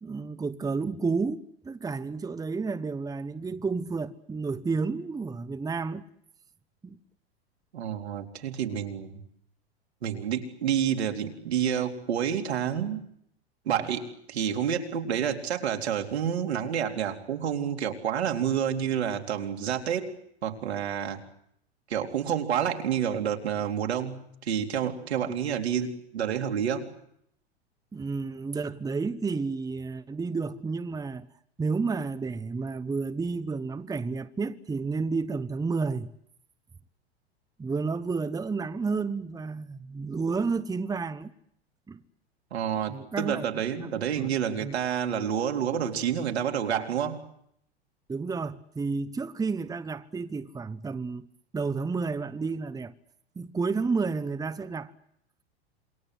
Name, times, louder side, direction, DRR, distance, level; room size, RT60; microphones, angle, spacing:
voice 1, 0.0-6.0 6.8-7.0 27.9-31.3 31.6-36.1 37.6-41.3 41.9-42.0 42.9-43.4 43.8-44.3 44.6-44.8 48.1-51.3 51.5-52.9 53.4-54.9, right 4 dB, 10° right, 1.1 m, -31 dB
voice 2, 7.7-9.2 10.0-13.0 13.7-20.2 20.4-21.2 21.9-26.9 42.5-47.2, right 8 dB, 80° right, 3.9 m, -29 dB
28.0 x 23.0 x 7.9 m
hypercardioid pair, 100°, 32 cm